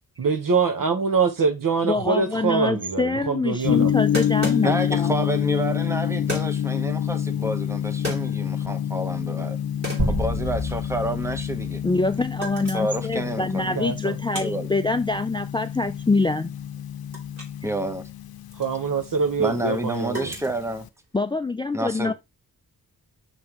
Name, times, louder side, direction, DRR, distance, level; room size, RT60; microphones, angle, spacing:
voice 1, 0.2-3.9 13.7-14.2 18.6-20.3, right 5 dB, 65° right, 1.2 m, -24 dB
voice 2, 1.8-5.1 11.8-16.5 21.1-22.1, left 3 dB, 15° left, 0.4 m, -25 dB
sound 1, 2.5-2.6 2.8-2.9 4.1-5.1 6.3-6.8 7.8-8.7 9.2-9.5 9.8-12.0 12.3-13.0 13.4-17.6 17.9-21.1, equal, 45° right, 2.9 m, -36 dB
Gong, 3.6-20.9, left 9 dB, 85° left, 0.6 m, -28 dB
voice 3, 4.6-9.6 10.1-11.8 12.7-13.8 14.3-14.7 17.6-18.0 19.4-20.9 21.7-22.1, right 1 dB, 10° right, 1.0 m, -29 dB
sound 2, 10.0-12.8, equal, 80° right, 4.9 m, -30 dB
6.3 x 6.0 x 3.0 m
wide cardioid pair, 120°, 36 cm